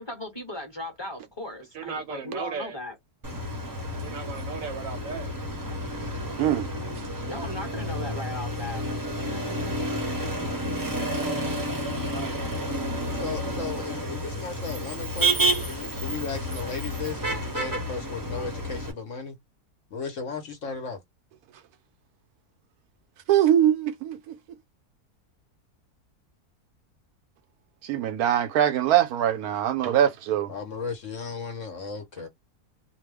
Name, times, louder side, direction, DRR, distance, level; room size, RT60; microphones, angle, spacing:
voice 1, 0.0-3.0 7.3-8.9, left 1 dB, 20° left, 1.2 m, -37 dB
voice 2, 1.7-2.8 4.0-5.3 12.0-12.7, right 6 dB, 70° right, 1.0 m, -36 dB
Motor vehicle (road), 3.2-18.9, right 1 dB, 20° right, 0.7 m, -30 dB
voice 3, 13.1-19.4 19.9-21.0 30.5-32.3, left 5 dB, 55° left, 1.2 m, -35 dB
voice 4, 23.3-24.4 27.9-30.5, right 10 dB, 85° right, 1.1 m, -22 dB
2.8 x 2.3 x 3.3 m
omnidirectional pair, 1.6 m